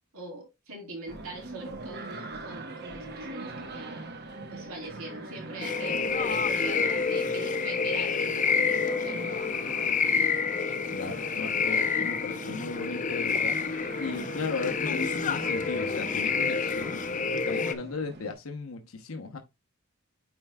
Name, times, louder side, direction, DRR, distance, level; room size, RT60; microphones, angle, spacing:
voice 1, 0.1-4.1 4.5-9.3, right 2 dB, 90° right, 3.8 m, -43 dB
sound 1, 1.1-18.3, right 2 dB, 50° right, 1.1 m, -42 dB
sound 2, 5.6-17.7, left 5 dB, 35° left, 0.6 m, -28 dB
voice 2, 10.9-13.6 14.0-17.0 17.5-19.4, left 4 dB, 80° left, 0.9 m, -36 dB
9.3 x 4.5 x 2.3 m
head